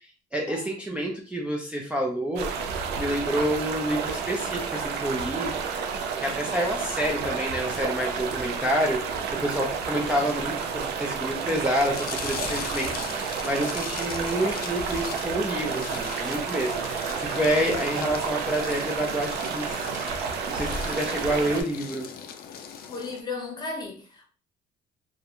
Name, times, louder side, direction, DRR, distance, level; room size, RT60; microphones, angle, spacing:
voice 1, 0.0-2.5 3.0-5.5 6.2-9.0 9.3-16.8 17.2-19.9 20.5-22.1, equal, 5° right, 0.4 m, -28 dB
sound 1, 2.4-21.6, right 6 dB, 75° right, 0.4 m, -31 dB
sound 2, 11.7-23.2, left 7 dB, 60° left, 0.4 m, -39 dB
voice 2, 22.9-24.2, left 3 dB, 25° left, 0.8 m, -36 dB
2.4 x 2.0 x 2.8 m
cardioid pair, 110°, 17 cm